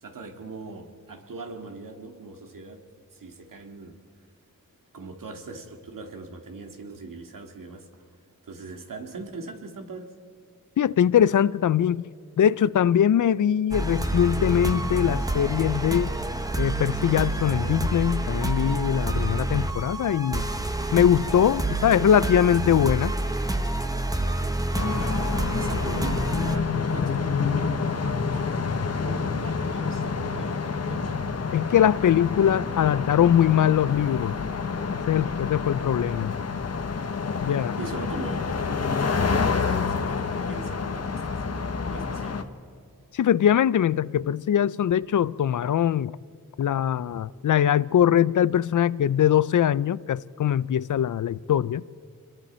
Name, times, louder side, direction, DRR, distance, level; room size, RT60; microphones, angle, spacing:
voice 1, 0.0-2.8 3.1-4.1 4.9-8.0 8.4-10.2 24.9-28.5 29.0-31.3 32.0-33.2 37.8-42.5, right 3 dB, 75° right, 2.2 m, -41 dB
voice 2, 10.8-12.1 12.4-16.1 16.6-20.4 20.9-23.1 31.5-34.3 35.1-36.3 37.4-37.8 43.1-46.1 46.6-51.8, left 9 dB, 65° left, 0.5 m, -22 dB
sound 1, 13.7-26.6, right 2 dB, 10° right, 1.3 m, -28 dB
sound 2, 24.7-42.4, left 5 dB, 50° left, 1.3 m, -28 dB
27.0 x 22.0 x 4.4 m
cardioid pair, 80°, 33 cm